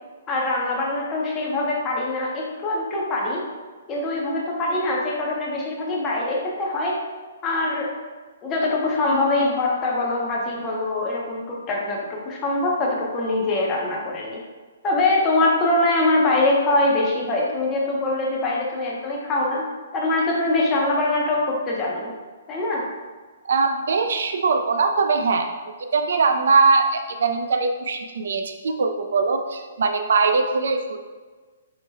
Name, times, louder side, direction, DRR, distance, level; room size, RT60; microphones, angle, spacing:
voice 1, 0.3-3.5 3.9-7.0 7.4-7.9 8.4-14.4 14.8-19.7 19.9-22.1 22.5-22.9, left 2 dB, 15° left, -3 dB, 0.6 m, -23 dB
voice 2, 23.5-25.5 25.9-31.0, right 4 dB, 60° right, 6 dB, 0.4 m, -21 dB
4.5 x 2.1 x 4.5 m, 1.4 s
hypercardioid pair, 180°, 0 cm